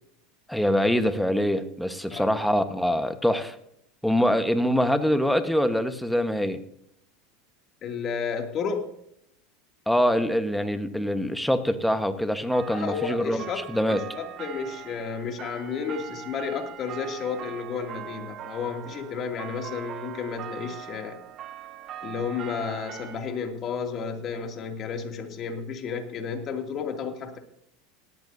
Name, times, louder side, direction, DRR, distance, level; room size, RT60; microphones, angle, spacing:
voice 1, 0.5-3.6 4.0-6.6 9.9-14.0, equal, ahead, 9 dB, 1.2 m, -24 dB
voice 2, 7.8-8.9 12.6-21.2 22.0-27.4, left 6 dB, 45° left, 4 dB, 2.6 m, -32 dB
sound 1, 12.5-23.2, right 10 dB, 45° right, 1.2 m, -41 dB
18.0 x 14.0 x 2.7 m, 0.74 s
hypercardioid pair, 90°, 0 cm